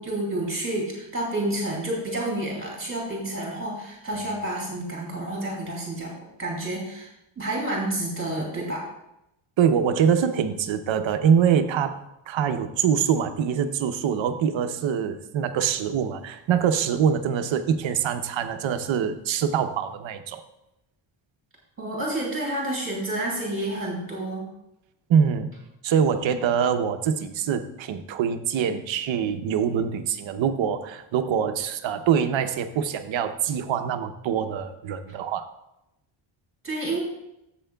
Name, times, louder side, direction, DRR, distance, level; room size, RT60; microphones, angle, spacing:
voice 1, 0.0-8.9 21.8-24.5 36.6-37.0, right 1 dB, 25° right, -2 dB, 2.5 m, -29 dB
voice 2, 9.6-20.4 25.1-25.5 25.8-35.5, right 7 dB, 65° right, 8 dB, 0.8 m, -24 dB
12.5 x 7.7 x 2.3 m, 0.85 s
cardioid pair, 135°, 50 cm